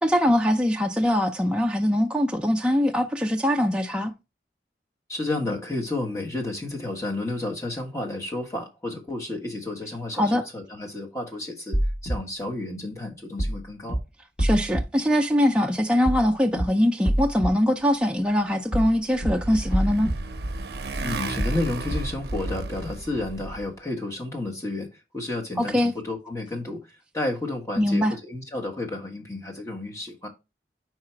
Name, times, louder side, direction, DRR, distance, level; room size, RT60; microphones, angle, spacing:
voice 1, 0.0-4.1 10.2-10.4 14.4-20.1 25.6-25.9 27.8-28.1, equal, 5° right, 0.5 m, -22 dB
voice 2, 5.1-14.0 21.0-26.9 27.1-30.3, left 2 dB, 15° left, 1.4 m, -31 dB
sound 1, 11.7-12.2 13.4-13.6 13.9-14.0 14.4-14.8 16.1-16.3 16.6-16.7 17.0-17.5 18.7-18.9 19.2-19.3 19.7-20.2 21.4-21.6 21.9-22.0, right 1 dB, 40° left, 1.6 m, -25 dB
Motorcycle, 18.6-23.7, right 2 dB, 65° right, 0.6 m, -33 dB
4.8 x 4.8 x 4.4 m
head